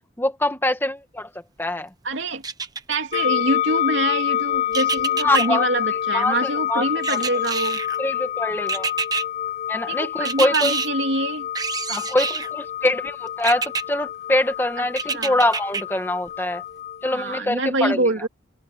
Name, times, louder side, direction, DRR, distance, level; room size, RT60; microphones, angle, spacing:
voice 1, 0.2-1.3 1.6-1.9 5.2-5.7 6.1-6.8 7.1-7.2 8.0-8.9 9.7-10.7 11.9-16.6 17.0-18.1, left 1 dB, 10° left, 1.8 m, -24 dB
voice 2, 2.0-2.4 2.9-7.8 9.9-11.5 15.1-15.4 17.1-18.3, right 2 dB, 70° right, 3.2 m, -25 dB
sound 1, 2.4-3.2 4.7-5.5 7.0-8.0 8.7-9.2 10.3-10.9 11.6-12.5 13.4-13.8 15.0-15.8 16.3-16.4, right 5 dB, 20° right, 1.1 m, -27 dB
sound 2, 3.1-17.4, left 11 dB, 35° left, 0.6 m, -27 dB
head